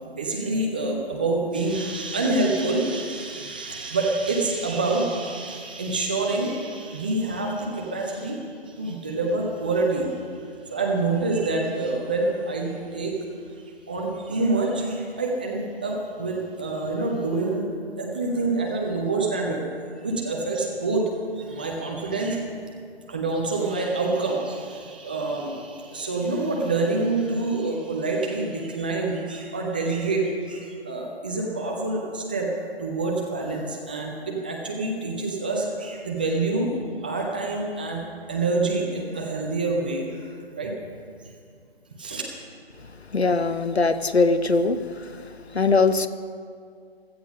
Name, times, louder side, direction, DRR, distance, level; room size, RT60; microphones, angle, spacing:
voice 1, 0.1-10.1 10.4-13.1 13.9-17.6 18.0-19.6 20.0-22.5 23.1-32.5 32.8-36.8 37.0-40.1 40.5-40.7 42.0-42.2, right 3 dB, 10° right, -1 dB, 0.5 m, -27 dB
voice 2, 43.1-44.8 45.5-46.1, left 3 dB, 80° left, 12 dB, 1.0 m, -20 dB
16.0 x 13.0 x 5.3 m, 2.3 s
figure-of-eight pair, 145°, 32 cm